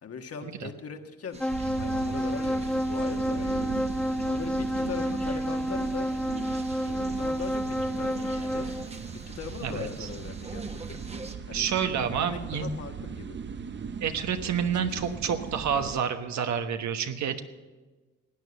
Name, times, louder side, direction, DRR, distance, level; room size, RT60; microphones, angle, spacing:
voice 1, 0.0-1.4 1.7-6.1 6.9-8.8 9.1-11.0 11.5-11.7 12.2-13.4 14.6-15.0, left 6 dB, 50° left, 5 dB, 1.6 m, -40 dB
sound 1, 1.3-11.4, right 3 dB, 20° right, 1.3 m, -47 dB
sound 2, 1.4-8.9, equal, 5° left, 0.4 m, -29 dB
sound 3, 1.5-16.0, right 6 dB, 40° right, 0.8 m, -39 dB
voice 2, 9.6-10.1 11.5-12.7 14.0-17.4, right 7 dB, 65° right, 7 dB, 1.3 m, -29 dB
16.5 x 9.4 x 6.9 m, 1.3 s
cardioid pair, 90°, 30 cm